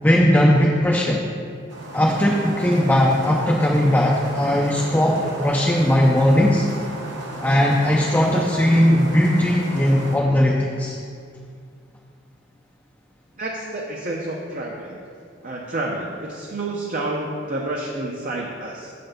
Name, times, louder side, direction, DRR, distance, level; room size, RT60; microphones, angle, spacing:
voice 1, 0.0-1.3 1.9-6.7 7.4-11.0, equal, 10° left, -2 dB, 0.5 m, -18 dB
sound 1, 1.7-10.2, right 1 dB, 60° right, 1.1 m, -35 dB
voice 2, 13.4-15.0 15.4-18.9, right 2 dB, 40° right, -2 dB, 0.6 m, -29 dB
6.5 x 4.2 x 6.5 m, 2.2 s
head